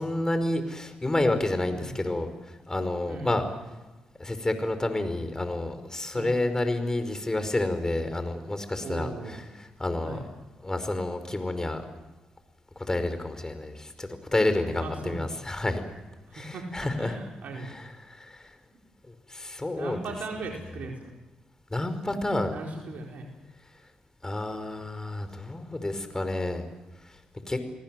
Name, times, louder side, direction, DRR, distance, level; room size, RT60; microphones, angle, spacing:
voice 1, 0.0-2.3 2.7-3.4 4.2-9.1 9.8-10.2 10.6-11.8 12.9-15.8 16.3-17.1 18.1-18.5 19.3-20.0 21.7-22.5 24.2-26.6 27.5-27.6, left 2 dB, 20° left, 9 dB, 5.2 m, -29 dB
voice 2, 3.1-3.6 6.1-6.4 8.8-9.4 10.0-10.2 14.8-15.4 16.3-17.8 19.7-21.1 22.5-23.3, right 3 dB, 65° right, 0 dB, 4.7 m, -38 dB
29.0 x 19.0 x 7.8 m, 1.1 s
supercardioid pair, 55°, 3 cm